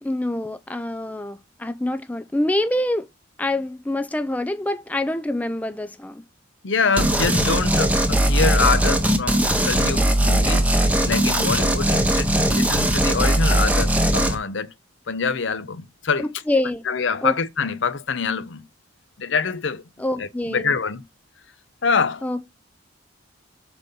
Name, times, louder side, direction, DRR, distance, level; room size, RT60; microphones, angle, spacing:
voice 1, 0.0-3.1 3.4-6.2 12.4-12.6 16.2-16.9 17.2-17.4 20.0-20.8 22.2-22.4, left 1 dB, 10° left, 0.4 m, -26 dB
voice 2, 6.6-10.7 11.0-14.7 15.1-16.3 16.9-18.6 19.2-19.8 20.2-21.0 21.8-22.2, left 5 dB, 70° left, 0.7 m, -25 dB
sound 1, 7.0-14.4, right 1 dB, 5° right, 0.9 m, -19 dB
6.9 x 4.1 x 5.2 m
head